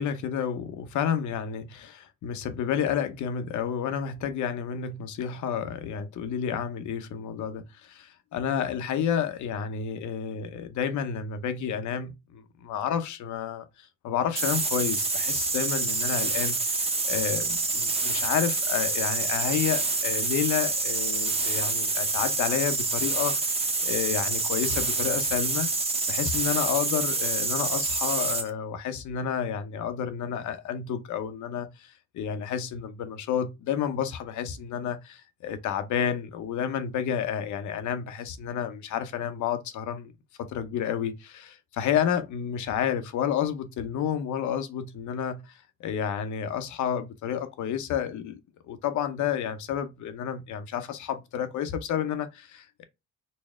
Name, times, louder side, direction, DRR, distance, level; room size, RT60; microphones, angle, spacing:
voice 1, 0.0-25.7 26.1-40.1 40.4-48.4 48.7-52.8, left 8 dB, 70° left, 0.7 m, -30 dB
sound 1, 14.3-28.5, right 3 dB, 20° right, 0.7 m, -27 dB
4.2 x 2.0 x 3.5 m
cardioid pair, 90°, 30 cm